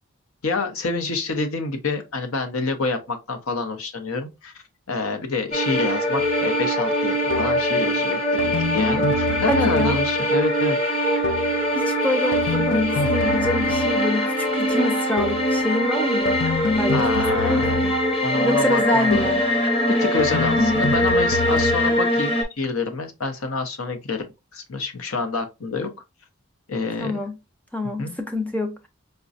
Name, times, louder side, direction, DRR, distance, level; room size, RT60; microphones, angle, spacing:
voice 1, 0.4-4.5 4.9-10.8 16.9-17.8 18.2-19.3 19.9-24.2 24.5-25.9 26.7-27.1 28.0-28.1, left 3 dB, 80° left, 0.8 m, -27 dB
sound 1, 5.5-22.4, equal, 30° left, 0.9 m, -22 dB
sound 2, 6.2-6.4 7.3-7.7 8.4-10.3 11.2-11.7 12.3-14.1 15.2-15.6 16.3-18.2 19.1-19.5 20.2-22.0, left 4 dB, 60° left, 0.5 m, -27 dB
voice 2, 9.5-10.0 11.7-16.4 16.7-18.0 18.4-19.4 27.0-27.4 27.7-28.9, left 1 dB, 5° left, 0.5 m, -26 dB
5.0 x 2.2 x 2.5 m
head